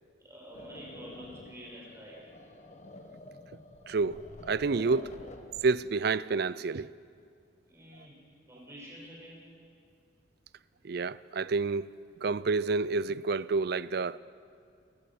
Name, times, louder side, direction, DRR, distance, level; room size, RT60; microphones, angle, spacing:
voice 1, 0.2-2.3 7.7-8.2 8.5-9.6, equal, 15° right, 6.2 m, -48 dB
sound 1, 0.5-5.7, left 1 dB, 35° left, 1.5 m, -49 dB
voice 2, 3.9-5.2 5.6-6.9 10.8-11.9 12.2-14.2, right 4 dB, 55° right, 0.4 m, -29 dB
28.0 x 14.0 x 7.7 m
head